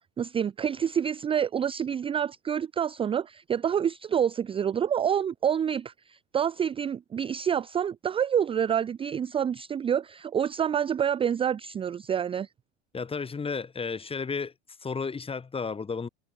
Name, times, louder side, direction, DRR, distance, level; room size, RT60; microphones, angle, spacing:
voice 1, 0.2-12.5, right 8 dB, 15° right, 0.6 m, -27 dB
voice 2, 12.9-14.5 14.8-16.1, left 5 dB, 15° left, 2.9 m, -32 dB
hypercardioid pair, 90°, 34 cm